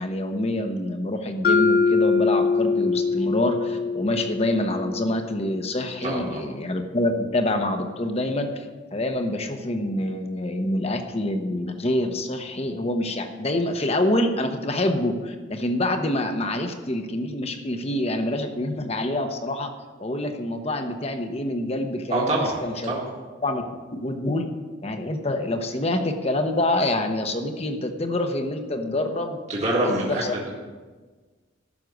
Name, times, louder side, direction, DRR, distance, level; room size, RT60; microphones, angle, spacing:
voice 1, 0.0-8.6 8.9-19.7 20.0-22.9 23.4-23.6 23.9-24.5 24.8-30.3, left 1 dB, 35° left, 6 dB, 1.0 m, -26 dB
Mallet percussion, 1.4-5.5, left 4 dB, 55° left, 0.6 m, -23 dB
voice 2, 6.0-6.4 22.1-22.6 22.8-23.0 29.5-30.5, right 1 dB, 35° right, -4 dB, 1.8 m, -25 dB
12.5 x 6.7 x 7.9 m, 1.4 s
head